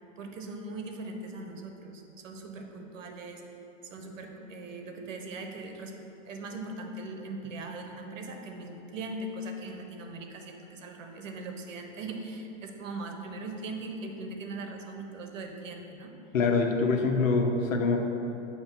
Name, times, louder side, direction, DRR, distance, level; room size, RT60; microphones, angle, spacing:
voice 1, 0.2-3.4 3.8-5.9 6.3-16.1, right 2 dB, 70° right, 3 dB, 0.8 m, -40 dB
voice 2, 16.3-18.0, left 4 dB, 80° left, 3 dB, 0.9 m, -25 dB
6.4 x 2.9 x 5.8 m, 2.9 s
hypercardioid pair, 175°, 40 cm